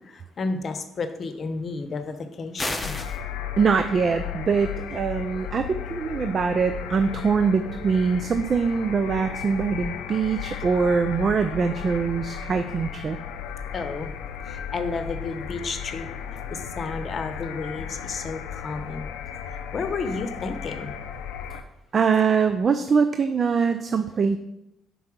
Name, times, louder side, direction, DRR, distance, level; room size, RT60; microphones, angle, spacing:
voice 1, 0.1-2.9 13.7-14.1 14.5-16.1 16.5-19.0 19.7-20.9, left 4 dB, 45° left, 9 dB, 0.8 m, -31 dB
sound 1, 2.6-3.2, left 1 dB, 10° left, 0.8 m, -30 dB
sound 2, 2.8-21.6, left 8 dB, 85° left, 0.5 m, -35 dB
voice 2, 3.6-13.2 21.9-24.4, right 5 dB, 45° right, 9 dB, 0.4 m, -23 dB
5.4 x 4.7 x 6.0 m, 0.86 s
supercardioid pair, 75°, 0 cm